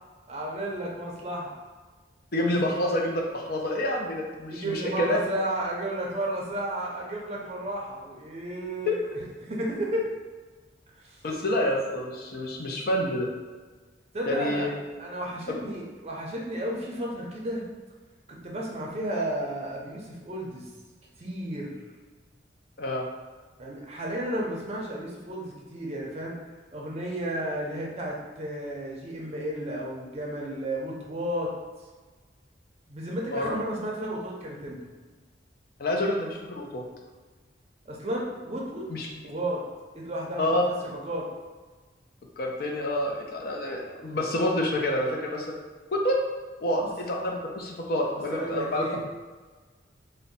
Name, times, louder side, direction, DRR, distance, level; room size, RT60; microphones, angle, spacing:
voice 1, 0.3-1.5 2.4-2.8 4.5-9.0 9.4-10.1 11.0-11.2 14.1-14.7 15.0-17.6 18.3-20.7 21.2-21.7 23.6-26.4 26.7-31.5 32.9-34.8 37.9-38.9 39.2-39.6 39.9-40.5 40.8-41.3 46.8-46.9 48.3-49.0, right 1 dB, 35° right, -2 dB, 0.5 m, -33 dB
voice 2, 2.3-5.2 8.9-9.0 11.2-13.3 14.3-14.7 22.8-23.0 33.3-33.5 35.8-36.8 38.9-39.1 40.4-40.6 42.4-45.5 45.9-46.2 46.6-48.8, left 1 dB, 55° left, 0 dB, 0.5 m, -28 dB
2.6 x 2.1 x 4.0 m, 1.4 s
head